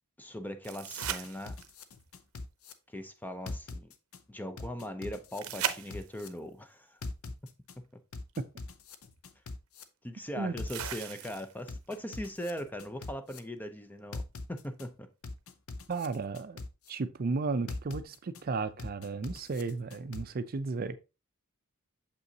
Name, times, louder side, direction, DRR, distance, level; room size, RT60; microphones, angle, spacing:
voice 1, 0.2-1.6 2.9-3.9 4.3-7.0 10.0-14.2 14.5-15.1, equal, 10° left, 0.5 m, -40 dB
sound 1, 0.6-1.9 5.4-6.4 8.3-8.4 10.7-11.7 14.6-14.7, right 9 dB, 80° right, 0.7 m, -37 dB
sound 2, 1.0-2.7 3.5-4.2 4.6-6.3 7.0-7.7 8.1-9.8 10.6-11.3 11.7-13.4 14.1-14.9 15.2-16.9 17.7-18.4 18.8-20.2, left 3 dB, 80° left, 0.7 m, -42 dB
voice 2, 15.9-16.6 16.9-21.0, right 4 dB, 45° right, 0.4 m, -34 dB
6.8 x 5.4 x 2.8 m
head